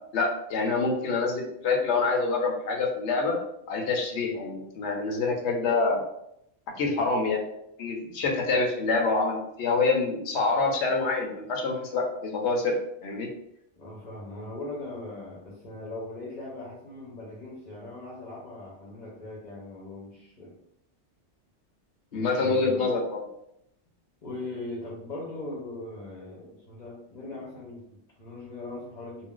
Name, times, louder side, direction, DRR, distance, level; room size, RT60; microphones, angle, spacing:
voice 1, 0.1-3.4 3.7-6.0 6.8-7.4 7.8-12.8 13.0-13.3 22.1-23.2, left 3 dB, 70° left, 1 dB, 0.9 m, -26 dB
voice 2, 13.8-20.5 22.1-22.9 24.2-29.3, left 2 dB, 45° left, -5 dB, 0.8 m, -40 dB
2.5 x 2.1 x 3.7 m, 0.78 s
omnidirectional pair, 1.2 m